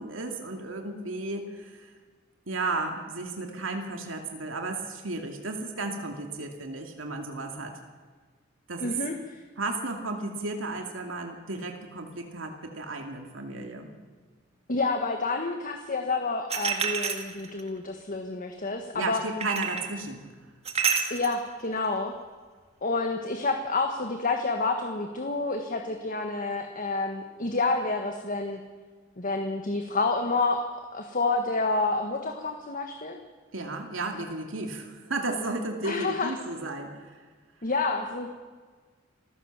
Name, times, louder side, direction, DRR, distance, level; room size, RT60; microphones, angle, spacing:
voice 1, 0.0-1.9 2.5-7.8 8.7-8.9 9.6-13.9 18.9-20.2 33.5-37.2, right 2 dB, 85° right, 3 dB, 2.5 m, -34 dB
voice 2, 8.8-9.4 14.7-19.2 21.1-22.1 22.8-28.6 29.2-30.6 30.9-33.2 35.8-36.3 37.6-38.3, left 3 dB, 45° left, 5 dB, 1.5 m, -29 dB
sound 1, 16.5-17.7 19.4-19.9 20.6-21.4, right 6 dB, 35° right, 2.0 m, -28 dB
27.0 x 15.5 x 7.4 m, 1.5 s
head